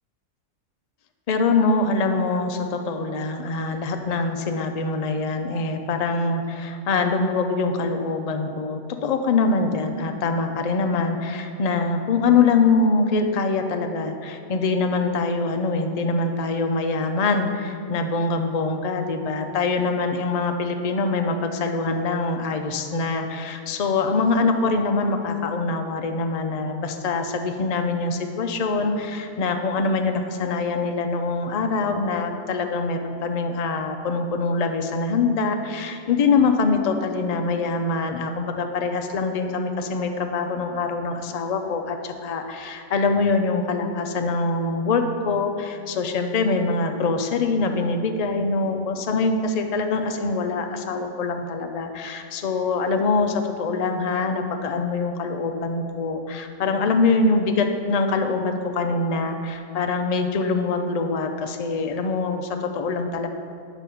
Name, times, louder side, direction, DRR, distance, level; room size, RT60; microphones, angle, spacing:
voice 1, 1.3-63.3, left 3 dB, 70° left, 5 dB, 0.3 m, -24 dB
9.8 x 4.1 x 6.9 m, 2.5 s
omnidirectional pair, 1.5 m